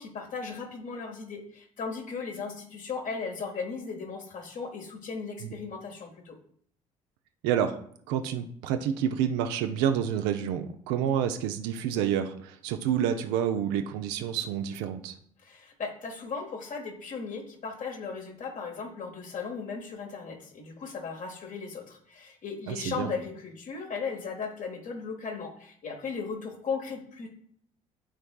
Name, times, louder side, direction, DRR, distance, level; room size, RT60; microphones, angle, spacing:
voice 1, 0.0-6.4 15.4-27.3, left 5 dB, 45° left, 4 dB, 1.5 m, -37 dB
voice 2, 7.4-7.8 8.1-15.2 22.7-23.1, right 9 dB, 65° right, 7 dB, 0.6 m, -28 dB
12.5 x 4.5 x 2.3 m, 0.63 s
figure-of-eight pair, 50°, 19 cm